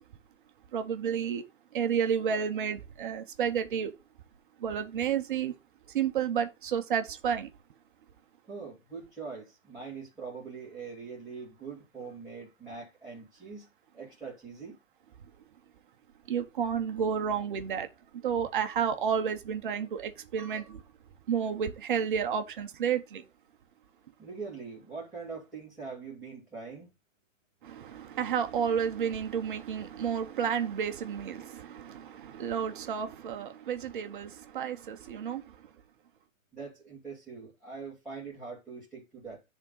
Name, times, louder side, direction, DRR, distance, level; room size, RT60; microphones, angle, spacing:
voice 1, 0.7-1.4 1.7-3.9 4.6-5.5 5.9-7.5 16.3-17.9 18.2-20.8 21.3-23.2 27.6-35.4, right 7 dB, 40° right, 1.0 m, -31 dB
voice 2, 8.5-13.7 13.9-14.8 24.2-26.9 36.5-39.4, right 5 dB, ahead, 2.5 m, -43 dB
10.5 x 3.7 x 5.4 m
hypercardioid pair, 165°, 40 cm